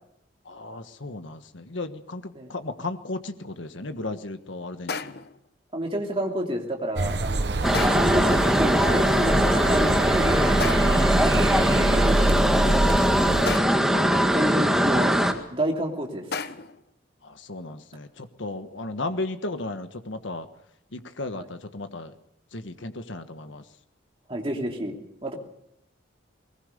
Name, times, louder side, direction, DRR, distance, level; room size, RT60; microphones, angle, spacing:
voice 1, 0.4-5.2 17.2-20.5 20.9-22.1 22.5-23.6, left 2 dB, 75° left, 9 dB, 1.4 m, -35 dB
sound 1, 4.9-5.4 7.7-8.3 10.6-11.2 13.5-14.0 16.3-16.8, left 5 dB, 55° left, 0.9 m, -33 dB
voice 2, 5.7-7.6 7.9-11.3 11.7-12.5 13.6-15.2 15.5-16.4 21.3-21.5 24.3-24.9 25.2-25.3, equal, 30° right, 2 dB, 2.8 m, -30 dB
sound 2, 7.0-13.6, right 2 dB, 60° right, 1.0 m, -25 dB
sound 3, 7.6-15.3, equal, ahead, 1.7 m, -21 dB
20.5 x 19.5 x 6.7 m, 0.77 s
head